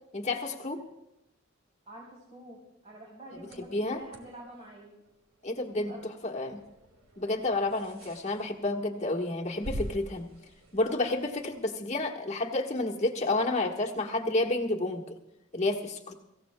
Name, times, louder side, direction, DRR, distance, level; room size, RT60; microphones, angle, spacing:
voice 1, 0.1-0.8 3.4-4.0 5.4-6.6 7.2-10.3 10.7-15.2 15.5-16.1, left 2 dB, 30° left, 1 dB, 1.3 m, -30 dB
voice 2, 1.9-4.9 5.7-6.0, right 1 dB, 30° right, -5 dB, 3.2 m, -47 dB
sound 1, 3.3-11.6, equal, 75° right, 2.1 m, -46 dB
25.0 x 15.5 x 2.2 m, 0.88 s
head